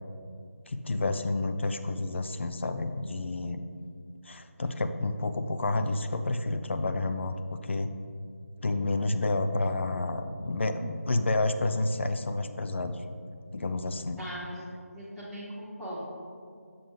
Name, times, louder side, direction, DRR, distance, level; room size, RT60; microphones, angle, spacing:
voice 1, 0.7-3.6 4.2-7.9 8.6-13.0 13.5-14.2, left 2 dB, 50° left, 8 dB, 0.4 m, -30 dB
voice 2, 14.2-14.7 14.9-16.0, equal, ahead, -13 dB, 0.8 m, -39 dB
6.7 x 5.7 x 3.7 m, 2.2 s
figure-of-eight pair, 165°, 8 cm